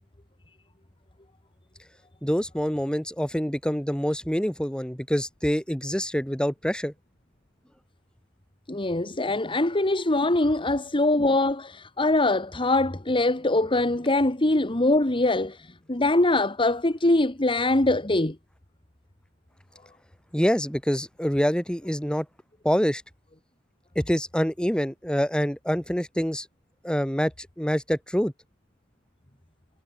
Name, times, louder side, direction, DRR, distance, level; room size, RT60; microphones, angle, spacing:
voice 1, 2.2-6.9 20.3-22.3 22.6-23.0 24.0-26.5 26.8-28.3, equal, 5° left, 6.0 m, -26 dB
voice 2, 8.7-18.4, left 2 dB, 25° left, 1.6 m, -23 dB
head